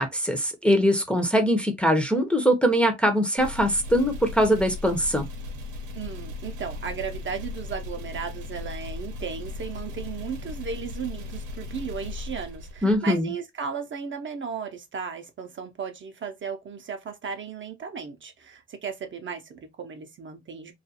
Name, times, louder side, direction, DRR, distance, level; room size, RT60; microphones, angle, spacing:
voice 1, 0.0-5.3 12.8-13.3, equal, 5° left, 0.6 m, -22 dB
sound 1, 3.4-13.2, left 3 dB, 80° right, 0.7 m, -37 dB
voice 2, 6.0-20.7, right 6 dB, 40° right, 0.5 m, -35 dB
2.4 x 2.3 x 2.7 m
cardioid pair, 90°, 30 cm